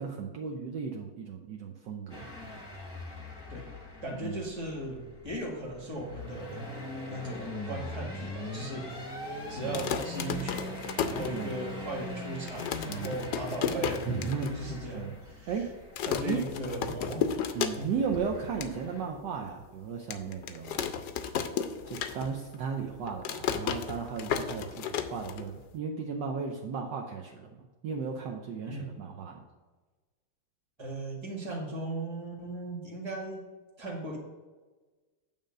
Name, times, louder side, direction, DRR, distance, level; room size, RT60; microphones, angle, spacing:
voice 1, 0.0-2.2 4.2-4.4 9.6-9.9 11.3-11.6 12.9-13.2 14.1-15.2 15.5-15.8 16.3-16.4 17.5-20.9 21.9-29.4, right 6 dB, 70° right, 2 dB, 1.2 m, -35 dB
sound 1, 2.1-19.0, left 1 dB, 15° left, 0.9 m, -42 dB
voice 2, 4.0-6.6 7.0-9.2 9.5-14.2 14.5-15.7 16.0-17.2 17.7-17.9 28.7-29.0 30.8-33.4 33.8-34.2, right 1 dB, 15° right, -3 dB, 1.6 m, -37 dB
sound 2, 9.6-11.9 12.2-12.3 12.5-14.5 14.9-15.0 15.2-15.6 16.0-18.1 18.4-18.7 19.2-19.3 20.1-22.5 22.8-25.8, left 8 dB, 75° left, 1.1 m, -33 dB
8.9 x 3.6 x 6.5 m, 1.3 s
omnidirectional pair, 2.2 m